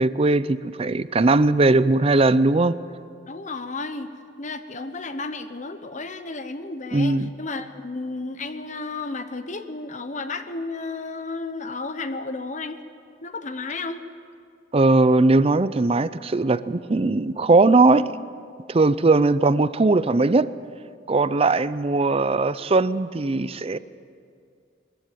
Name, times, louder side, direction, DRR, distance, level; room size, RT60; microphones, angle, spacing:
voice 1, 0.0-2.8 6.9-7.3 14.7-18.1 18.7-20.5 21.1-23.8, right 3 dB, 30° right, 16 dB, 0.5 m, -19 dB
voice 2, 3.3-4.1 4.4-12.8 13.2-14.0, left 3 dB, 40° left, 9 dB, 1.0 m, -33 dB
22.0 x 14.5 x 9.2 m, 2.3 s
head